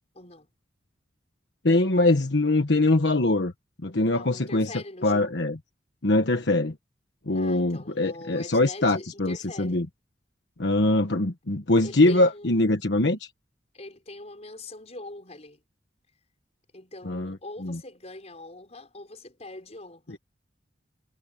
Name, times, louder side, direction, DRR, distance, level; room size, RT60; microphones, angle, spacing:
voice 1, 0.1-0.5 4.1-5.5 7.3-9.8 11.8-12.9 13.7-15.6 16.7-20.2, left 2 dB, 35° left, 5.4 m, -43 dB
voice 2, 1.6-3.5 3.8-4.7 5.0-5.6 6.0-6.7 7.3-9.9 10.6-13.3 17.1-17.3 17.6-17.8, left 2 dB, 70° left, 1.3 m, -23 dB
head